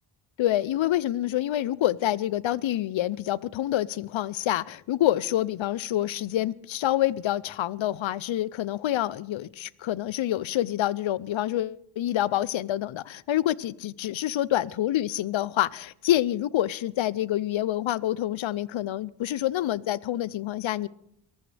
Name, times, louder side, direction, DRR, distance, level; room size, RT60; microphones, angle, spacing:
voice 1, 0.4-20.9, left 13 dB, 75° left, 0.6 m, -27 dB
23.0 x 18.0 x 3.4 m
wide cardioid pair, 130°, 47 cm